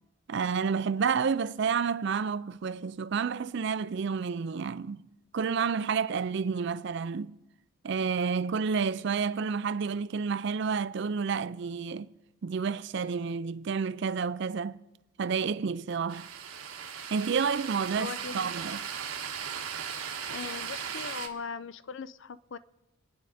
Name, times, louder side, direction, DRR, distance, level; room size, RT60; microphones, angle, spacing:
voice 1, 0.3-5.0 5.3-7.4 7.8-12.1 12.4-14.8 15.2-16.3 17.1-18.8, right 5 dB, 55° right, 0.4 m, -30 dB
sound 1, 16.1-21.3, right 7 dB, 90° right, 1.4 m, -37 dB
voice 2, 18.0-18.5 20.3-22.6, left 5 dB, 60° left, 0.5 m, -39 dB
25.5 x 9.7 x 4.2 m
head